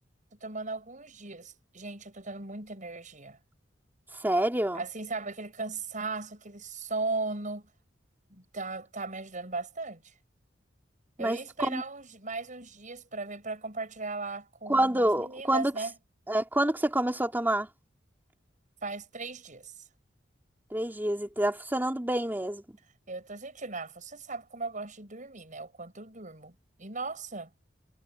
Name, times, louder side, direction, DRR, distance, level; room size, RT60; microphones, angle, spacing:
voice 1, 0.3-3.4 4.7-7.7 8.3-10.1 11.2-15.9 18.8-19.9 23.1-27.5, right 3 dB, 45° right, 8.0 m, -37 dB
voice 2, 4.2-4.8 11.2-11.4 11.7-11.8 14.7-15.7 16.3-17.7 20.7-22.6, right 1 dB, 10° right, 3.0 m, -27 dB
head